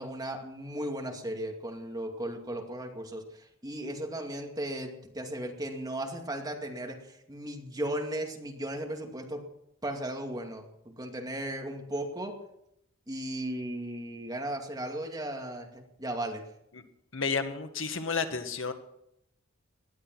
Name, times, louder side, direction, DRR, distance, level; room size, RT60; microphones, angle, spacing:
voice 1, 0.0-9.4 9.8-12.4 13.1-16.4, right 1 dB, 20° right, 2 dB, 2.4 m, -36 dB
voice 2, 17.1-18.7, left 5 dB, 70° left, 7 dB, 1.8 m, -31 dB
19.0 x 12.0 x 6.2 m, 0.77 s
head